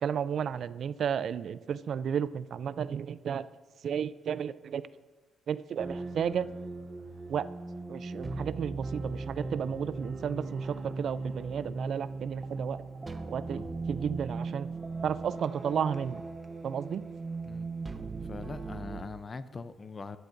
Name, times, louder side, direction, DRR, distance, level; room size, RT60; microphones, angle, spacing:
voice 1, 0.0-3.5 3.8-4.8 5.5-6.5 7.3-7.5 7.9-12.8 13.3-13.6 13.9-14.7 15.0-16.2 16.6-17.0, right 8 dB, 60° right, 16 dB, 0.3 m, -33 dB
sound 1, 5.8-19.0, right 3 dB, 25° right, 0.7 m, -38 dB
voice 2, 18.2-20.2, left 4 dB, 35° left, 13 dB, 0.6 m, -41 dB
14.5 x 11.5 x 2.6 m, 1.3 s
cardioid pair, 90°, 0 cm